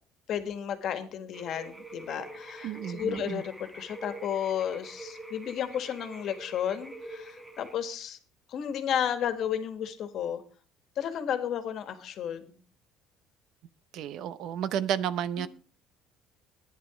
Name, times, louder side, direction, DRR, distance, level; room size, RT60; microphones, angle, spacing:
voice 1, 0.3-8.2 8.5-10.4 11.0-12.6 15.4-15.5, left 9 dB, 50° left, 1.6 m, -33 dB
sound 1, 1.3-7.8, right 2 dB, 5° right, 1.1 m, -45 dB
voice 2, 2.6-3.4 13.9-15.5, right 9 dB, 60° right, 0.7 m, -32 dB
11.5 x 9.9 x 4.9 m
cardioid pair, 130°, 0 cm